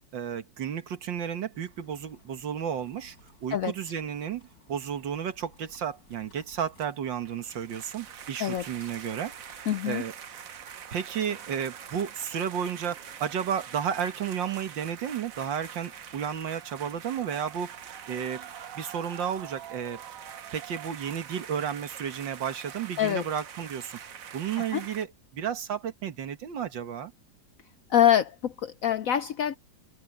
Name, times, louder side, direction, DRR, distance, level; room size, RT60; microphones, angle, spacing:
voice 1, 0.1-3.2 3.4-9.3 9.9-10.1 10.9-18.5 18.8-20.0 20.5-24.0 24.3-27.1, right 8 dB, 80° right, 2.1 m, -32 dB
sound 1, 1.5-9.8, left 1 dB, 50° left, 7.9 m, -60 dB
sound 2, 7.2-25.0, right 8 dB, 55° right, 1.3 m, -44 dB
voice 2, 9.7-10.0 23.0-23.2 24.6-24.8 27.9-29.6, left 10 dB, 70° left, 0.8 m, -25 dB
open air
omnidirectional pair, 2.0 m